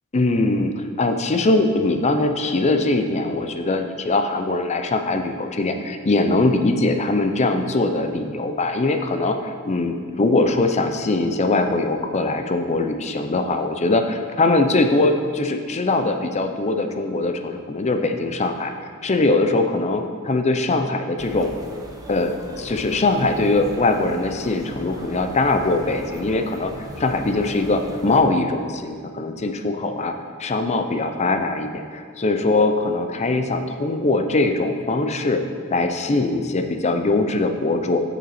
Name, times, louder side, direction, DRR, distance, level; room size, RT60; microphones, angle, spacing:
voice 1, 0.1-18.7 19.0-21.5 22.1-26.7 27.0-30.1 30.4-35.4 35.7-38.0, left 2 dB, 30° left, 6 dB, 0.5 m, -21 dB
sound 1, 21.2-28.2, right 1 dB, 15° right, 0.7 m, -37 dB
7.6 x 6.8 x 4.2 m, 2.1 s
head